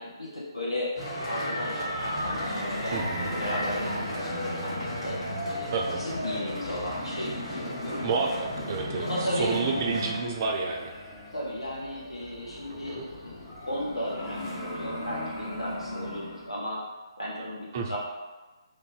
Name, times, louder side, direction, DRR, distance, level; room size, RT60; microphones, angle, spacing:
voice 1, 0.0-5.2 5.4-8.0 9.0-9.6 11.3-16.8 17.2-18.0, equal, 90° left, -6 dB, 1.0 m, -35 dB
sound 1, 1.0-10.2, equal, 65° left, 1.4 m, -35 dB
sound 2, 2.0-16.5, left 1 dB, 30° left, 0.8 m, -37 dB
voice 2, 2.9-3.3 5.7-6.0 8.0-10.9 12.7-13.1 17.7-18.0, right 4 dB, 35° right, 1 dB, 0.4 m, -30 dB
2.6 x 2.5 x 3.8 m, 1.2 s
figure-of-eight pair, 140°, 3 cm